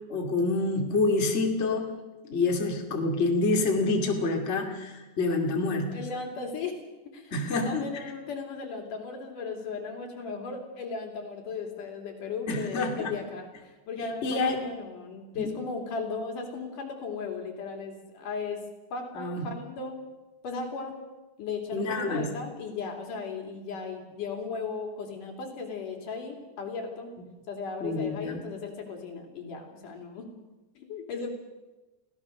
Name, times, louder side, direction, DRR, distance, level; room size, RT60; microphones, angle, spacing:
voice 1, 0.1-1.9 2.2-6.0 7.3-7.9 12.5-13.2 14.2-14.6 15.3-15.5 19.1-19.4 21.7-22.3 27.8-28.4, left 3 dB, 25° left, 2 dB, 2.4 m, -27 dB
voice 2, 5.9-6.8 7.1-18.6 18.9-20.0 20.4-21.0 21.4-27.1 27.5-30.3 30.8-31.3, left 4 dB, 80° left, 2 dB, 4.4 m, -36 dB
25.0 x 16.5 x 6.6 m, 1.1 s
omnidirectional pair, 3.7 m